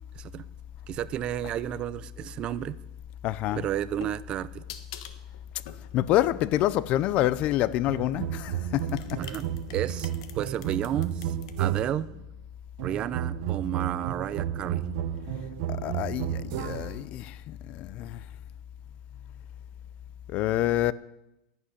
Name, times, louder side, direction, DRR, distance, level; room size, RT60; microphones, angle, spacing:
voice 1, 0.1-0.4 0.9-2.8 3.5-4.6 9.2-9.5 9.7-10.1 10.3-12.1 12.8-14.9, right 11 dB, 25° right, 0.5 m, -32 dB
voice 2, 3.2-3.6 5.9-9.2 15.7-18.2 20.3-20.9, left 14 dB, 35° left, 0.4 m, -27 dB
sound 1, 3.5-7.7 8.5-11.5, left 10 dB, 60° left, 1.4 m, -46 dB
sound 2, 7.9-12.1 12.8-17.1, right 10 dB, 55° right, 1.0 m, -32 dB
11.5 x 11.0 x 10.0 m
supercardioid pair, 165°, 4 cm